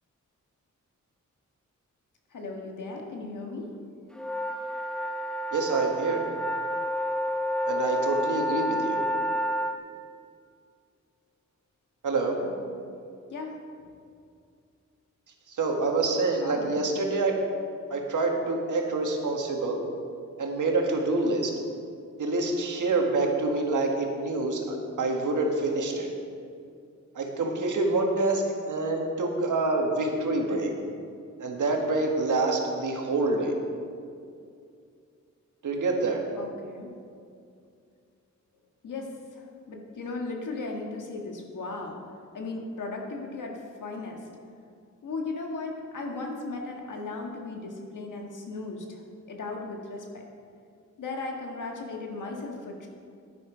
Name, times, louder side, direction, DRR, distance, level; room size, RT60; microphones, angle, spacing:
voice 1, 2.3-3.7 12.4-12.8 13.3-13.9 16.4-16.8 36.4-36.9 38.8-42.0 42.3-44.3 45.0-50.2 51.0-52.9, left 3 dB, 90° left, 1 dB, 1.7 m, -37 dB
sound 1, 4.1-9.8, equal, 5° left, 0.8 m, -29 dB
voice 2, 5.5-6.2 7.6-9.0 12.0-12.4 15.5-17.3 17.9-19.8 20.4-21.5 22.2-26.1 27.1-30.7 31.4-33.6 35.6-36.2, right 3 dB, 85° right, 1 dB, 1.7 m, -26 dB
10.5 x 10.5 x 5.0 m, 2.3 s
wide cardioid pair, 90°, 30 cm